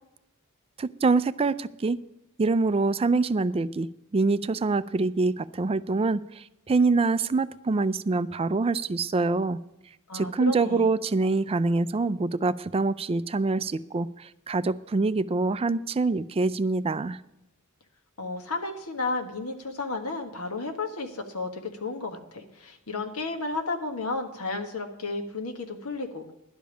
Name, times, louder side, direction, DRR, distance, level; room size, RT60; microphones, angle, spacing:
voice 1, 0.8-2.0 2.4-9.6 10.1-17.2, right 3 dB, 25° right, 15 dB, 0.4 m, -25 dB
voice 2, 10.1-10.9 18.2-26.3, left 3 dB, 70° left, 4 dB, 1.6 m, -33 dB
11.5 x 5.2 x 8.6 m, 0.91 s
head